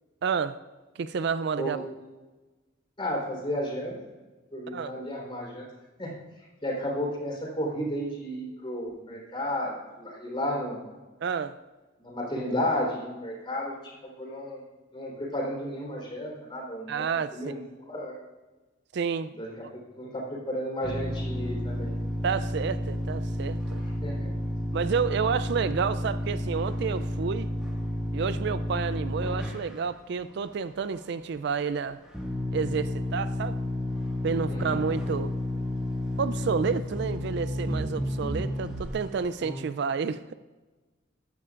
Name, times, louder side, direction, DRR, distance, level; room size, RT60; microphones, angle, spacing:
voice 1, 0.2-0.6 1.0-1.8 4.7-4.9 11.2-11.6 16.9-17.6 18.9-19.3 22.2-23.8 24.7-27.5 28.1-32.0 32.5-33.6 34.2-35.3 36.2-40.3, right 6 dB, 60° right, 0.4 m, -30 dB
voice 2, 3.0-3.9 4.5-5.7 6.0-6.1 6.6-10.8 12.0-13.8 14.0-14.6 14.9-18.1 19.4-19.7 19.9-21.9 24.0-24.3 34.5-34.9, equal, 25° left, 3.8 m, -33 dB
sound 1, 20.8-29.8 30.5-30.6 30.9-31.0 32.1-39.0 39.4-39.6, left 1 dB, 5° right, 1.7 m, -31 dB
15.0 x 11.0 x 2.5 m
head